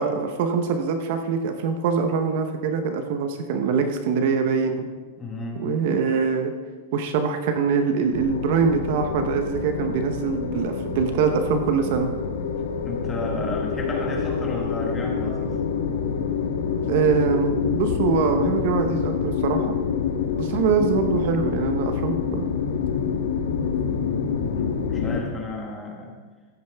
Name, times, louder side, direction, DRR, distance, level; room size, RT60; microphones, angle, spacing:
voice 1, 0.0-4.9 5.6-6.6 6.9-12.1 16.9-19.8 20.4-22.5, right 5 dB, 40° right, 7 dB, 0.8 m, -23 dB
voice 2, 5.2-5.7 12.8-15.6 24.4-26.1, left 2 dB, 10° left, 0 dB, 1.3 m, -33 dB
sound 1, 8.1-25.2, left 6 dB, 85° left, 1.2 m, -27 dB
14.5 x 9.0 x 3.4 m, 1.4 s
supercardioid pair, 180°, 0 cm